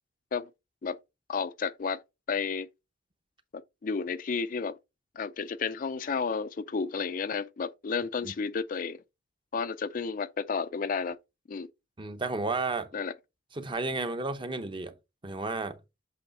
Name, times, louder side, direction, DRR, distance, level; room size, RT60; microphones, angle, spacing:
voice 1, 1.3-2.0 2.3-2.7 3.8-4.8 5.2-9.0 9.5-11.2 11.5-11.7 12.9-13.1, left 5 dB, 45° left, 0.4 m, -32 dB
voice 2, 12.0-12.9 13.5-14.9 15.2-15.8, right 3 dB, 25° right, 0.7 m, -32 dB
7.8 x 3.2 x 4.1 m
head